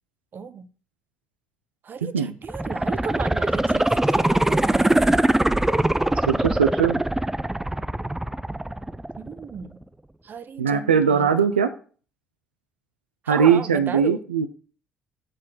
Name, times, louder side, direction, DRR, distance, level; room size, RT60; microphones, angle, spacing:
voice 1, 0.3-0.7 1.8-5.2 9.2-9.8 10.2-11.6 13.2-14.2, right 6 dB, 40° right, 0.8 m, -35 dB
sound 1, 2.4-9.4 9.8-9.9, right 1 dB, 5° right, 0.4 m, -22 dB
voice 2, 6.3-7.0 10.6-11.7 13.3-14.5, right 7 dB, 80° right, 0.4 m, -20 dB
7.6 x 4.2 x 6.2 m
figure-of-eight pair, 50°, 5 cm